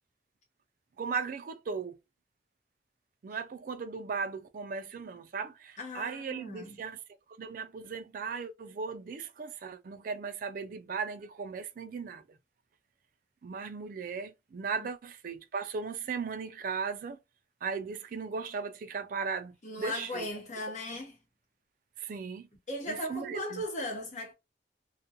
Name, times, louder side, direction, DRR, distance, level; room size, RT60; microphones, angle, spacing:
voice 1, 1.0-2.0 3.2-7.0 7.4-12.4 13.4-17.2 17.6-20.3 22.0-22.5 22.9-23.6, right 5 dB, 50° right, 0.3 m, -37 dB
voice 2, 5.8-6.8 19.6-21.2 22.7-24.3, left 1 dB, 40° left, 0.9 m, -37 dB
2.4 x 2.2 x 2.7 m
head